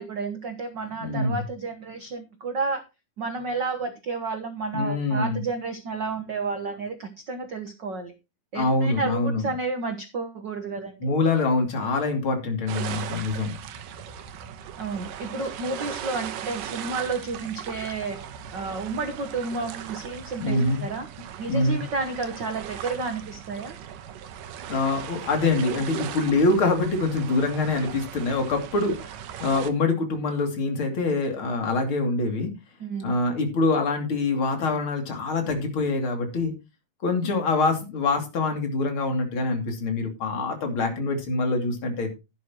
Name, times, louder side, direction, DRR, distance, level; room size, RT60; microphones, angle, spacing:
voice 1, 0.0-2.8 3.2-8.1 8.5-11.1 14.8-18.2 18.5-21.1 21.4-23.8 32.8-33.1, right 3 dB, 60° right, 7 dB, 1.1 m, -31 dB
voice 2, 1.0-1.4 4.7-5.4 8.5-9.5 11.0-13.6 20.4-20.8 21.5-21.8 24.7-29.0 29.4-32.5 33.0-36.5 37.0-42.1, left 3 dB, 40° left, 4 dB, 3.3 m, -25 dB
sound 1, 12.7-29.7, right 9 dB, 85° right, 2.8 m, -38 dB
12.0 x 11.5 x 3.0 m, 0.27 s
omnidirectional pair, 3.8 m